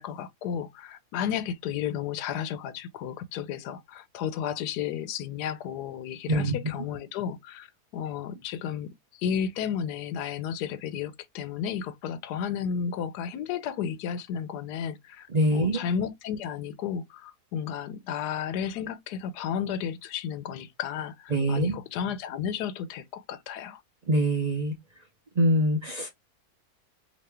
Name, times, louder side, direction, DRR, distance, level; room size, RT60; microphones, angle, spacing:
voice 1, 0.0-7.7 7.9-15.3 15.5-23.8, left 8 dB, 85° left, 1.1 m, -33 dB
voice 2, 15.3-15.8 21.3-21.8 24.1-24.8 25.4-26.1, right 1 dB, 50° right, 0.4 m, -24 dB
3.0 x 2.7 x 3.3 m
omnidirectional pair, 1.7 m